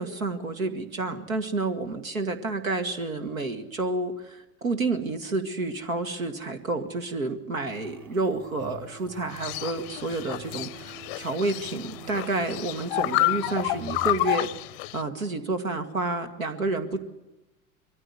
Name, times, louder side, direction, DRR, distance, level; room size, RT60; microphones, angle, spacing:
voice 1, 0.0-14.5 14.9-17.0, right 3 dB, 75° right, 8 dB, 2.2 m, -30 dB
sound 1, 7.7-14.2, right 4 dB, 50° right, 4.9 m, -46 dB
sound 2, 9.3-15.0, left 19 dB, 40° left, 0.6 m, -30 dB
23.0 x 14.5 x 9.7 m, 1.0 s
figure-of-eight pair, 80°, 41 cm